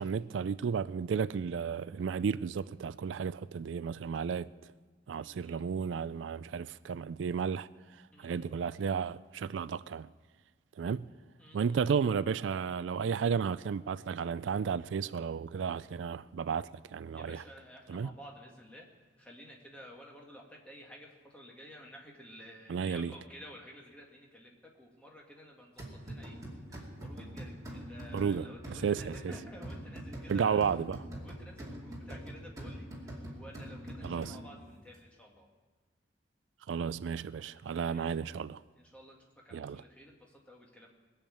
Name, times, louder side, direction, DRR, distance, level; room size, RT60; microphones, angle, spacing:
voice 1, 0.0-4.5 5.1-7.7 8.2-10.1 10.8-11.1 11.5-17.4 17.9-18.1 22.7-23.1 28.1-29.3 30.3-31.0 34.0-34.4 36.7-38.6 39.5-39.8, right 6 dB, 85° right, 0.4 m, -33 dB
voice 2, 5.2-5.6 8.1-8.5 11.4-11.8 17.1-18.9 19.2-30.6 31.2-35.5 37.9-38.1 38.8-40.9, equal, 5° left, 2.1 m, -52 dB
sound 1, 25.8-34.7, right 1 dB, 20° right, 2.5 m, -44 dB
21.0 x 7.2 x 8.6 m
head